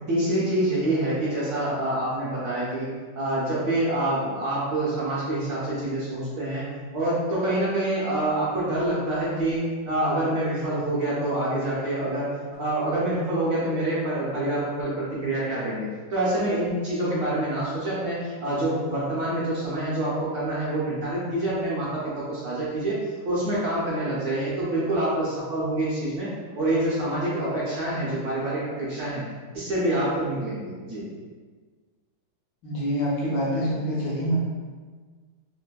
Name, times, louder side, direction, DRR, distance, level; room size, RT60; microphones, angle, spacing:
voice 1, 0.1-2.9 3.1-6.6 6.9-23.0 23.2-26.3 26.6-29.2 29.5-31.0, right 1 dB, 65° right, -8 dB, 1.0 m, -26 dB
voice 2, 32.6-34.4, equal, 75° left, -4 dB, 1.1 m, -26 dB
3.3 x 2.6 x 2.2 m, 1.5 s
omnidirectional pair, 2.2 m